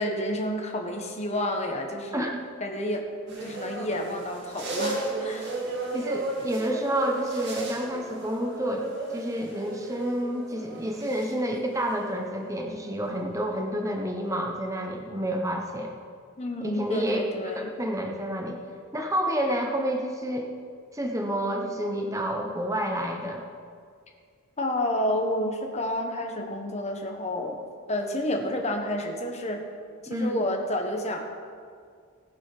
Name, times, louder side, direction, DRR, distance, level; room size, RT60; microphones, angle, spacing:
voice 1, 0.0-2.3 2.6-3.0 3.4-5.5 16.4-17.8 24.6-27.6 27.9-29.6 30.0-31.2, left 1 dB, 30° left, 2 dB, 1.4 m, -30 dB
sound 1, 3.3-11.3 11.6-12.6 13.0-13.1, right 2 dB, 50° right, 2.3 m, -34 dB
voice 2, 5.9-8.9 9.1-15.9 16.6-18.6 18.9-20.5 20.9-23.4 30.1-30.4, equal, 15° right, 2 dB, 1.0 m, -29 dB
18.5 x 6.2 x 5.8 m, 2.2 s
head